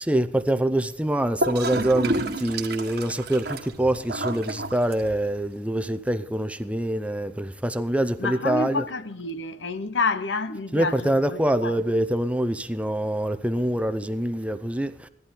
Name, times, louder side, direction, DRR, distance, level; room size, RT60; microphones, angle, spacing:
voice 1, 0.1-8.8 10.7-14.9, right 1 dB, 5° right, 0.6 m, -25 dB
Gurgling / Toilet flush, 1.4-5.4, right 2 dB, 60° right, 1.5 m, -30 dB
voice 2, 8.2-11.8, left 3 dB, 80° left, 1.0 m, -29 dB
16.0 x 11.5 x 3.8 m
head